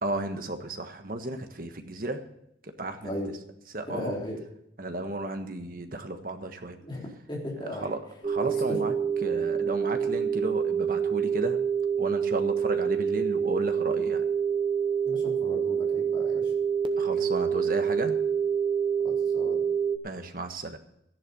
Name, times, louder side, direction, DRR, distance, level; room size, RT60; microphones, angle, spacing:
voice 1, 0.0-2.2 2.6-3.1 3.7-4.1 4.8-6.8 7.6-8.0 8.2-8.9 9.2-11.6 12.0-14.3 17.0-18.2 20.0-20.8, right 1 dB, 50° right, 6 dB, 1.4 m, -33 dB
voice 2, 3.9-4.4 6.8-7.9 8.4-8.5 15.0-16.5 19.0-19.6, left 1 dB, 25° left, -3 dB, 3.8 m, -36 dB
sound 1, 8.2-20.0, right 7 dB, 25° right, 0.9 m, -27 dB
13.5 x 11.0 x 5.5 m, 0.77 s
head